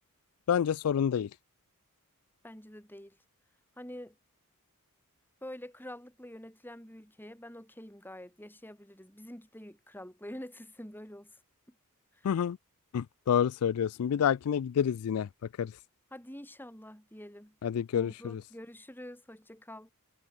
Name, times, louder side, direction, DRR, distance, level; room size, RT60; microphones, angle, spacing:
voice 1, 0.5-1.3 12.2-12.6 12.9-15.3 15.6-15.7 17.6-18.4, left 8 dB, 70° left, 0.3 m, -28 dB
voice 2, 2.4-3.2 3.8-4.2 5.4-11.4 12.1-12.3 16.1-17.6 17.9-19.9, left 1 dB, 10° left, 7.0 m, -47 dB
head